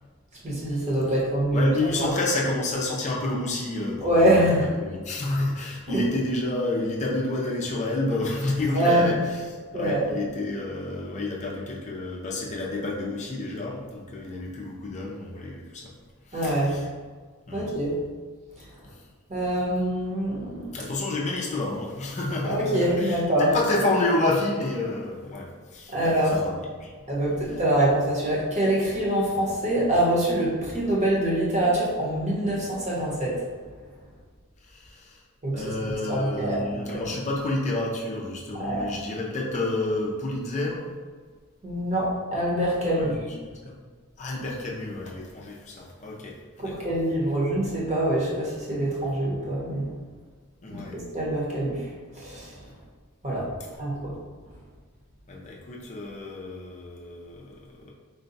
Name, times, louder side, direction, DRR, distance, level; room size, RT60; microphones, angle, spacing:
voice 1, 0.4-1.7 2.0-2.1 4.0-4.7 5.9-6.0 8.7-9.1 9.7-10.1 16.3-16.7 17.5-18.0 19.3-20.7 22.4-23.5 25.9-26.3 27.1-33.4 35.4-37.0 38.6-38.9 41.6-43.2 46.6-49.9 50.7-52.6 53.2-53.5 53.8-54.1, right 1 dB, 30° right, -5 dB, 1.0 m, -25 dB
voice 2, 1.5-15.9 16.3-16.9 17.5-17.7 18.8-19.0 20.7-26.9 34.6-35.2 35.5-40.9 43.0-43.8 44.2-46.9 50.6-51.0 55.3-57.9, left 2 dB, 35° left, -3 dB, 0.5 m, -30 dB
3.9 x 2.3 x 3.9 m, 1.5 s
head